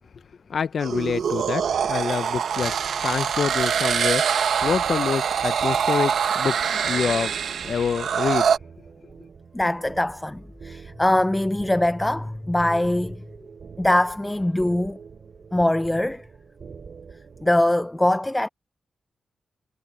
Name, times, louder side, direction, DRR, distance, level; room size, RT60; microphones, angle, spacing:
voice 1, 0.5-2.7 3.0-4.3 4.6-7.4 7.6-8.5, left 6 dB, 60° left, 0.6 m, -26 dB
sound 1, 0.8-8.6, right 7 dB, 75° right, 1.0 m, -24 dB
sound 2, 0.9-17.6, right 6 dB, 55° right, 3.4 m, -46 dB
voice 2, 9.5-13.3 13.8-15.0 15.5-16.2 17.4-18.5, left 1 dB, 10° left, 0.4 m, -22 dB
wide cardioid pair, 120°, 0 cm